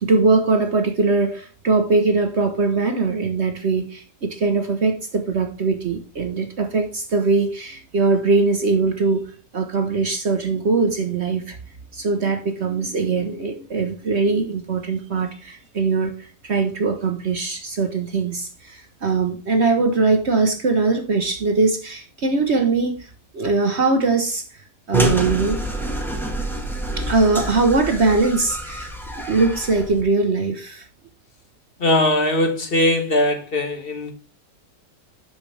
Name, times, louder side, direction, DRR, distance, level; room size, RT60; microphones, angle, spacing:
voice 1, 0.0-11.6 11.9-24.4 24.9-25.6 27.0-28.9 29.2-30.8, right 3 dB, 45° right, 1.1 m, -21 dB
sound 1, 24.9-30.0, right 1 dB, ahead, 1.4 m, -27 dB
voice 2, 31.8-34.1, left 1 dB, 35° left, 1.4 m, -20 dB
8.8 x 6.3 x 3.4 m
omnidirectional pair, 1.8 m